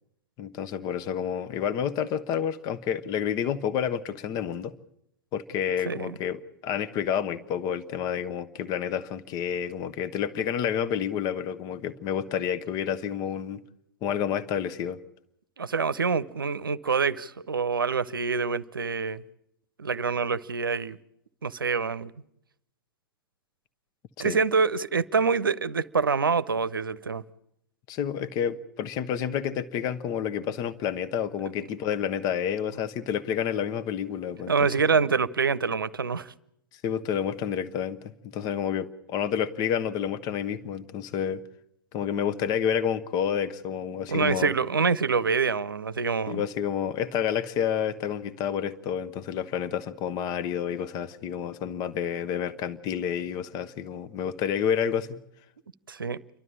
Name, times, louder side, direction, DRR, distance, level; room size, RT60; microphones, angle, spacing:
voice 1, 0.4-4.7 5.3-13.6 14.0-15.0 24.2-24.4 27.9-34.7 36.8-38.0 38.2-41.4 41.9-44.5 46.3-55.1, left 8 dB, 35° left, 1.1 m, -29 dB
voice 2, 15.6-19.2 19.8-21.0 21.4-22.1 24.2-27.2 34.5-36.3 44.1-46.5 55.9-56.2, right 5 dB, 75° right, 0.7 m, -26 dB
29.0 x 12.5 x 8.8 m
figure-of-eight pair, 100°, 11 cm